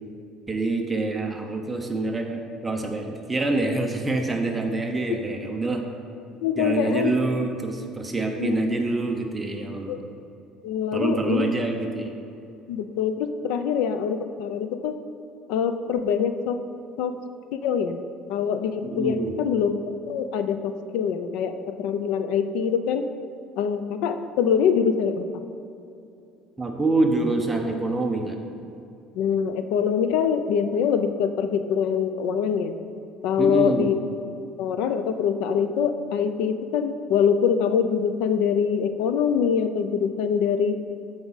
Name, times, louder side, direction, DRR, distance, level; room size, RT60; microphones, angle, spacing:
voice 1, 0.5-5.8 6.6-10.0 10.9-12.1 18.8-19.3 26.6-28.4 33.4-33.9, right 2 dB, 10° right, 2 dB, 0.8 m, -26 dB
voice 2, 6.4-7.2 8.4-8.7 9.9-10.0 10.6-11.5 12.7-14.9 15.5-16.6 17.0-17.1 17.5-18.0 18.3-19.7 20.1-23.1 23.6-25.3 29.1-32.7 33.2-34.0 34.6-40.8, left 7 dB, 75° left, 9 dB, 0.5 m, -24 dB
13.0 x 4.9 x 4.0 m, 2.6 s
cardioid pair, 160°, 0 cm